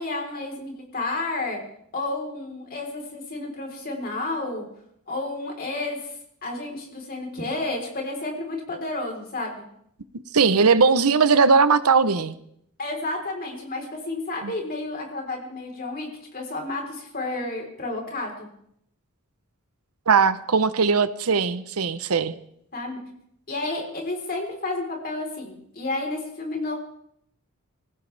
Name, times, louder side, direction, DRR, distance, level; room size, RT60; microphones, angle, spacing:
voice 1, 0.0-1.6 1.9-4.6 5.1-6.1 6.4-9.6 12.8-18.5 22.7-23.0 23.5-26.7, left 2 dB, 40° left, 1 dB, 4.0 m, -31 dB
voice 2, 10.3-12.4 14.4-14.5 20.1-22.4, right 5 dB, 85° right, 13 dB, 0.9 m, -19 dB
25.0 x 16.0 x 3.4 m, 0.72 s
head